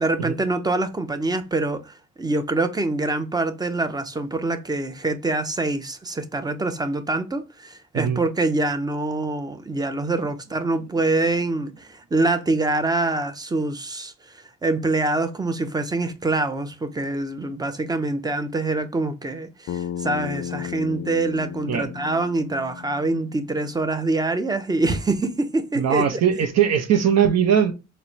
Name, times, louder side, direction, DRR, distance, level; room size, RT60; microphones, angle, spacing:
voice 1, 0.0-26.2, right 2 dB, 15° right, 0.5 m, -25 dB
Bass guitar, 19.7-24.0, left 10 dB, 60° left, 0.4 m, -34 dB
voice 2, 25.8-27.7, right 8 dB, 60° right, 0.7 m, -20 dB
4.1 x 2.1 x 2.9 m
cardioid pair, 90°, 30 cm